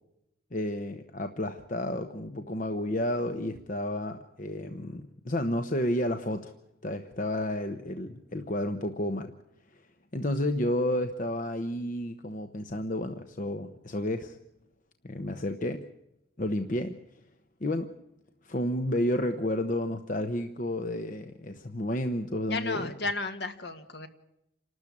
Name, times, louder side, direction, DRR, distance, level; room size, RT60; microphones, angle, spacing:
voice 1, 0.5-6.5 6.8-9.3 9.7-9.8 10.1-14.4 15.0-15.9 16.4-17.0 17.6-17.9 18.4-22.9, left 1 dB, 45° left, 7 dB, 1.0 m, -31 dB
voice 2, 22.5-24.1, left 3 dB, 60° left, 8 dB, 1.9 m, -33 dB
28.0 x 13.0 x 8.6 m, 0.84 s
head